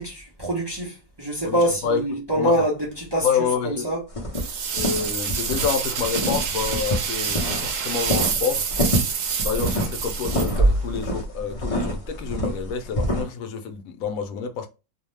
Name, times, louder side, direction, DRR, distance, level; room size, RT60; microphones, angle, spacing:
voice 1, 0.0-4.1, right 1 dB, 25° right, 0.6 m, -25 dB
voice 2, 1.4-2.6 3.2-3.9 4.7-8.7 9.4-14.7, left 6 dB, 85° left, 1.0 m, -28 dB
sound 1, 4.1-5.7 6.0-7.7 8.0-13.2, equal, 35° left, 0.6 m, -25 dB
sound 2, 4.3-11.1, right 7 dB, 75° right, 0.9 m, -28 dB
2.6 x 2.1 x 3.1 m
omnidirectional pair, 1.4 m